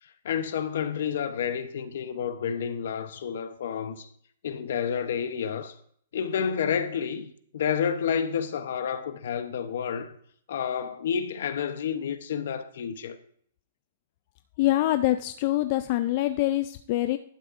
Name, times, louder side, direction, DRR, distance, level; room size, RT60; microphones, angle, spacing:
voice 1, 0.0-4.1 4.4-5.7 6.1-10.2 10.5-13.2, left 7 dB, 60° left, 0.8 m, -30 dB
voice 2, 14.6-17.2, left 15 dB, 35° left, 0.3 m, -25 dB
11.5 x 9.3 x 2.5 m
hypercardioid pair, 165°, 0 cm